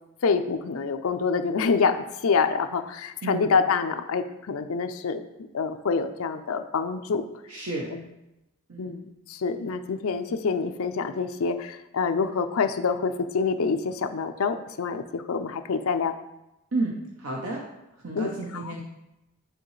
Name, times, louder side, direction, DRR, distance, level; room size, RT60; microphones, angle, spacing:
voice 1, 0.2-5.2 5.5-7.2 7.9-8.1 8.8-16.2 18.1-18.7, left 5 dB, 70° left, 8 dB, 0.5 m, -26 dB
voice 2, 7.5-7.9 8.7-9.0 16.7-17.6 18.0-18.8, right 2 dB, 65° right, -1 dB, 0.7 m, -31 dB
9.0 x 3.7 x 3.2 m, 0.93 s
head